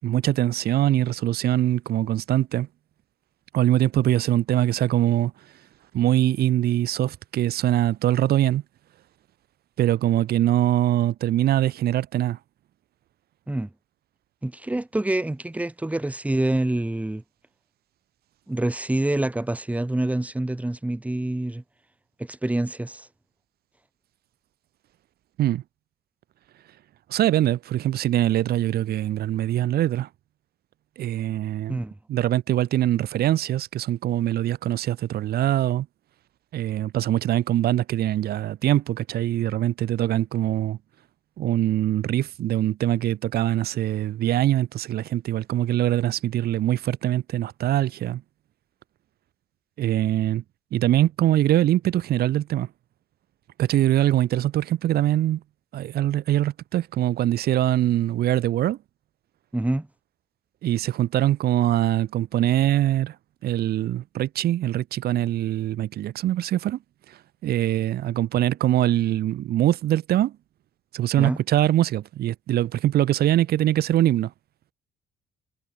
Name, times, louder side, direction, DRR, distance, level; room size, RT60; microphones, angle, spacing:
voice 1, 0.0-2.7 3.5-5.3 5.9-8.6 9.8-12.4 25.4-25.6 27.1-30.1 31.0-31.8 32.1-35.9 36.5-40.8 41.4-48.2 49.8-50.4 50.7-52.7 53.6-55.4 55.7-58.8 60.6-63.1 63.4-66.8 67.4-70.3 70.9-74.3, right 13 dB, 65° right, 6.3 m, -23 dB
voice 2, 14.4-17.2 18.5-21.6 22.2-23.1 31.7-31.9 59.5-59.9 71.2-71.4, right 1 dB, 10° right, 5.9 m, -26 dB
cardioid pair, 110°, 17 cm